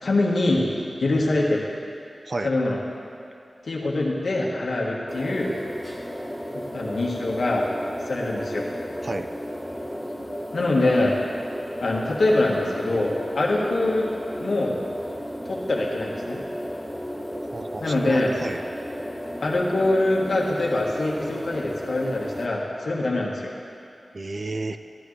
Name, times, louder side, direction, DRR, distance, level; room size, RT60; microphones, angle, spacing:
voice 1, 0.0-0.7 1.0-1.7 2.4-2.8 3.6-5.5 6.5-7.7 8.0-8.7 10.5-11.2 11.8-14.0 14.4-14.7 15.5-16.4 17.8-18.3 19.4-23.5, left 2 dB, 80° left, -3 dB, 1.5 m, -24 dB
sound 1, 5.1-22.5, equal, ahead, 1.0 m, -34 dB
voice 2, 17.5-18.6 24.1-24.8, right 2 dB, 45° right, 9 dB, 0.4 m, -31 dB
14.0 x 11.0 x 3.3 m, 2.6 s
wide cardioid pair, 100°, 0 cm